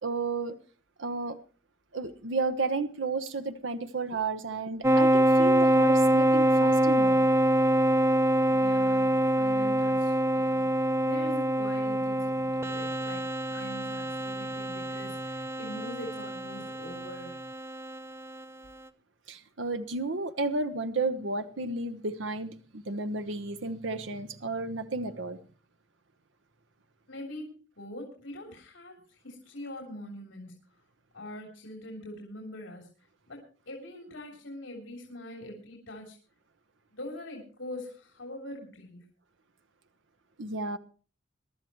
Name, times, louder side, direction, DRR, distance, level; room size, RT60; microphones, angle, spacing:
voice 1, 0.0-0.5 1.0-1.4 1.9-7.2 19.3-25.4 40.4-40.8, right 3 dB, 80° right, 1.0 m, -32 dB
sound 1, 4.8-18.0, right 1 dB, 15° right, 0.7 m, -25 dB
voice 2, 8.5-17.4 27.1-30.6 31.1-32.9 33.3-36.2 36.9-39.0, left 1 dB, 80° left, 3.4 m, -43 dB
22.5 x 12.5 x 3.1 m
head